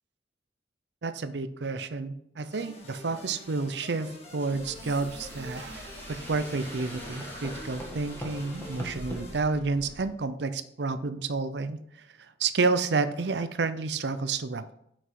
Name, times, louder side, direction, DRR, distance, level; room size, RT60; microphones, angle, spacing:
voice 1, 1.0-11.8 12.4-14.7, right 4 dB, 65° right, 12 dB, 0.6 m, -30 dB
sound 1, 2.5-9.4, left 2 dB, 35° left, 1.8 m, -47 dB
sound 2, 4.4-9.2, equal, 15° left, 1.6 m, -42 dB
sound 3, 4.5-10.1, right 1 dB, 85° right, 1.1 m, -47 dB
8.0 x 6.0 x 4.7 m, 0.74 s
head